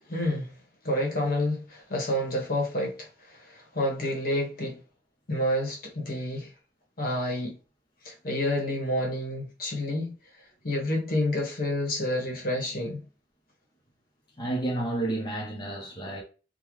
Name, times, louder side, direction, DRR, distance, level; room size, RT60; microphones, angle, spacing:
voice 1, 0.1-0.5 0.8-4.8 5.3-6.5 7.0-7.6 8.0-10.1 10.6-13.0, left 1 dB, 55° left, 1.2 m, -29 dB
voice 2, 14.4-16.2, right 2 dB, 25° left, 0.8 m, -30 dB
3.7 x 2.3 x 3.1 m
head